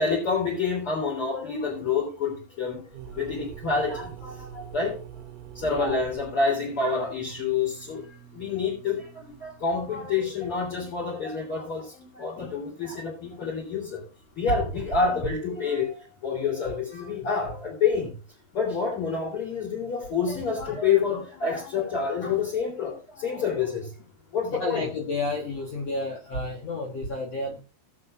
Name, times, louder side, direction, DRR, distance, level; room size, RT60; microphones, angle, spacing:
voice 1, 0.0-2.8 3.2-5.0 5.6-8.0 8.3-14.0 14.4-18.1 18.5-23.9 24.3-24.9, left 5 dB, 35° left, -2 dB, 4.1 m, -28 dB
sound 1, 2.9-10.7, right 9 dB, 75° right, 2.5 m, -45 dB
voice 2, 5.6-6.0 24.5-27.6, left 2 dB, 60° left, 0 dB, 1.7 m, -31 dB
20.0 x 7.8 x 2.5 m, 0.32 s
omnidirectional pair, 4.7 m